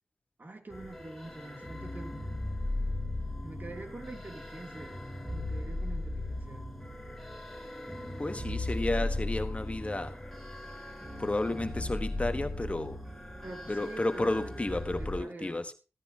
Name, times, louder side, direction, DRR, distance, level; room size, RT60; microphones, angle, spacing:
voice 1, 0.4-2.2 3.4-5.0 5.3-6.7 7.6-7.7 13.4-14.6 14.9-15.6, right 2 dB, 40° right, 2.8 m, -45 dB
sound 1, 0.7-15.2, left 1 dB, 5° left, 3.1 m, -37 dB
voice 2, 8.2-10.2 11.2-13.0 13.7-15.7, left 2 dB, 25° left, 1.2 m, -32 dB
15.5 x 14.0 x 2.9 m
wide cardioid pair, 65°, 5 cm